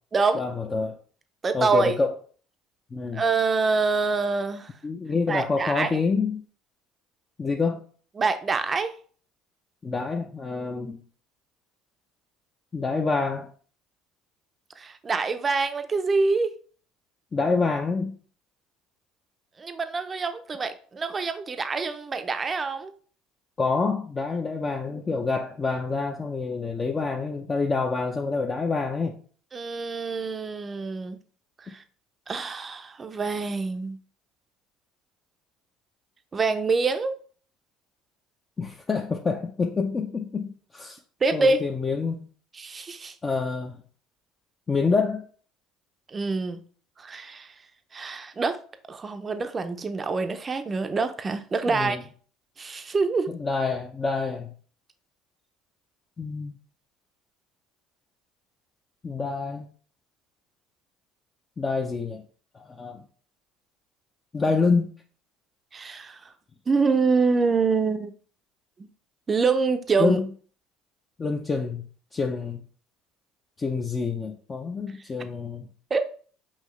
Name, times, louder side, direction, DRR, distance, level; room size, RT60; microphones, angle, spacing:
voice 1, 0.4-1.0 1.5-2.1 2.9-3.2 4.8-6.4 7.4-7.8 9.8-11.0 12.7-13.5 17.3-18.2 23.6-29.2 38.6-41.0 41.3-42.3 43.2-43.8 44.7-45.3 51.7-52.0 53.3-54.5 56.2-56.6 59.0-59.7 61.6-62.2 62.5-63.0 64.3-64.9 70.0-70.3 71.2-72.6 73.6-75.7, left 4 dB, 30° left, 0.5 m, -27 dB
voice 2, 1.4-2.0 3.1-4.7 5.3-6.0 8.2-8.9 14.8-16.5 19.6-22.9 29.5-31.2 31.6-31.8 32.3-34.0 36.3-37.1 41.2-41.6 42.6-43.1 46.1-46.6 47.0-47.5 47.9-48.6 48.9-52.0 52.6-53.3 65.7-66.2 66.7-68.1 68.8-68.9 69.3-70.2 75.9-76.0, right 4 dB, 30° right, 0.5 m, -25 dB
5.6 x 2.7 x 3.1 m
supercardioid pair, 85°, 0 cm